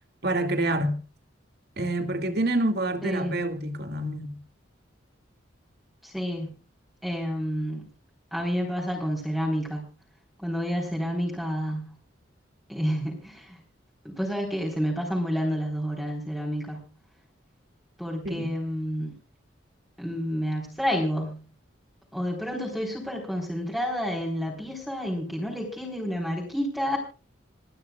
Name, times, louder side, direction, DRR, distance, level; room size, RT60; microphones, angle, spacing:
voice 1, 0.2-1.0 1.8-4.4 18.2-18.5, right 1 dB, 55° right, 2.2 m, -27 dB
voice 2, 3.0-3.4 6.0-6.6 7.0-7.9 8.3-9.8 10.4-11.9 12.7-13.6 14.0-16.8 18.0-19.1 20.0-21.4 22.1-27.0, equal, ahead, 4.1 m, -29 dB
28.0 x 11.5 x 2.4 m
head